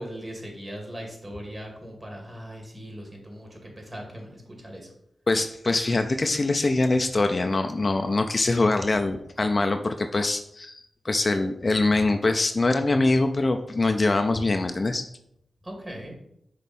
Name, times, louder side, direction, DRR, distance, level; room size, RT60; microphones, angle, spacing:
voice 1, 0.0-4.9 15.6-16.2, equal, 25° right, 0 dB, 2.5 m, -39 dB
voice 2, 5.3-15.1, left 2 dB, 45° left, 7 dB, 0.5 m, -23 dB
5.9 x 3.2 x 5.4 m, 0.75 s
cardioid pair, 45°, 0 cm